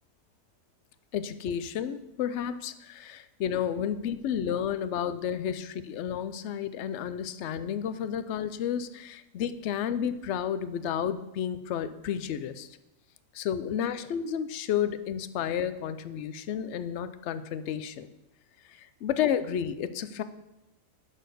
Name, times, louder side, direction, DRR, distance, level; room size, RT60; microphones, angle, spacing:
voice 1, 1.1-12.7 13.3-18.1 18.6-20.2, left 9 dB, 65° left, 12 dB, 0.7 m, -31 dB
10.0 x 4.2 x 6.7 m, 0.92 s
omnidirectional pair, 1.6 m